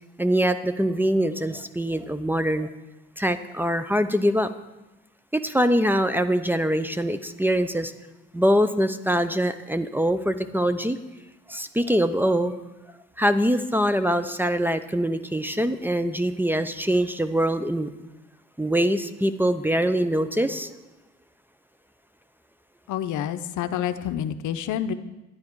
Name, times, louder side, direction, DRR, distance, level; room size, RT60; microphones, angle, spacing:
voice 1, 0.2-2.7 3.2-4.5 5.3-7.9 8.3-11.0 11.5-12.5 13.2-17.9 18.6-20.7, equal, 5° right, 11 dB, 0.5 m, -23 dB
voice 2, 22.9-24.9, left 9 dB, 80° left, 10 dB, 0.7 m, -28 dB
11.0 x 9.5 x 4.6 m, 1.0 s
cardioid pair, 90°, 30 cm